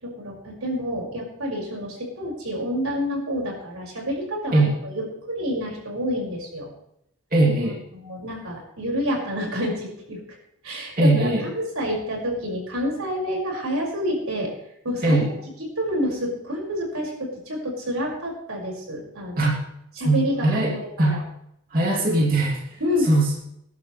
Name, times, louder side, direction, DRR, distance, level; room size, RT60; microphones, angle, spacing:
voice 1, 0.0-6.7 7.9-10.2 10.6-14.5 14.8-15.2 15.6-19.5 20.0-21.2 22.8-23.1, equal, 90° right, -1 dB, 5.5 m, -28 dB
voice 2, 7.3-7.8 11.0-11.5 15.0-15.3 19.4-19.5 20.0-21.2 21.7-23.3, right 2 dB, 45° right, -3 dB, 2.7 m, -21 dB
21.0 x 11.5 x 3.2 m, 0.76 s
head